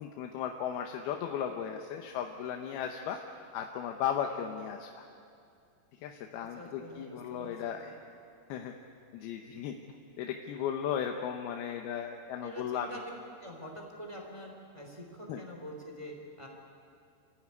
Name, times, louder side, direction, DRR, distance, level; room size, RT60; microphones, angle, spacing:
voice 1, 0.0-3.2 3.5-5.1 6.0-8.0 8.5-8.8 9.1-9.8 10.2-13.0 15.3-15.4, left 8 dB, 75° left, 3 dB, 2.8 m, -36 dB
voice 2, 6.6-7.5 12.4-13.1 13.4-16.5, equal, 10° right, 0 dB, 2.7 m, -45 dB
28.5 x 15.0 x 9.7 m, 2.4 s
omnidirectional pair, 4.8 m